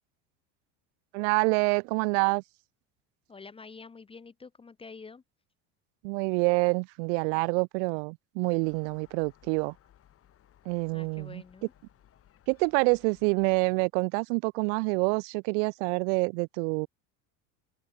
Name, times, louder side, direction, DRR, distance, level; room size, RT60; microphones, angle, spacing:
voice 1, 1.1-2.4 6.0-9.7 10.7-11.4 12.5-16.9, right 35 dB, 75° right, 0.5 m, -27 dB
voice 2, 3.3-5.2 10.9-11.7, left 4 dB, 15° left, 1.2 m, -47 dB
Gull seagull, 8.6-13.7, left 11 dB, 40° left, 7.4 m, -61 dB
supercardioid pair, 130°, 36 cm